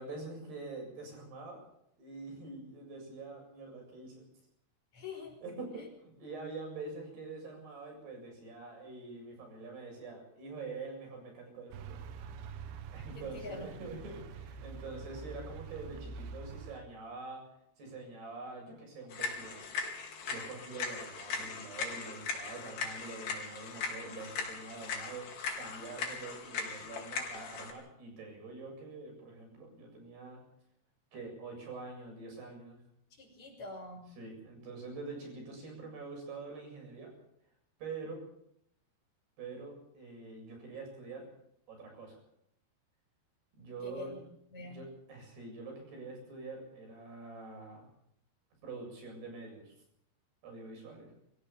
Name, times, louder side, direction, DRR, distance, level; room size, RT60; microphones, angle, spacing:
voice 1, 0.0-1.6 2.0-4.3 5.4-12.3 12.6-17.4 17.8-19.6 20.3-25.3 25.6-30.4 31.1-32.8 34.2-37.1 37.8-38.2 39.4-41.2 41.7-42.2 43.6-44.1 44.6-47.9 48.6-49.7 50.4-51.1, right 3 dB, 70° right, 2 dB, 9.6 m, -45 dB
voice 2, 4.9-5.4 13.1-13.7 33.2-34.1 43.8-44.1 44.5-44.8, left 3 dB, 40° left, 2 dB, 6.5 m, -45 dB
sound 1, 11.7-16.8, right 5 dB, 90° right, 3.6 m, -46 dB
sound 2, 19.1-27.7, left 5 dB, 80° left, 5.5 m, -39 dB
25.5 x 15.5 x 7.2 m, 0.74 s
omnidirectional pair, 4.9 m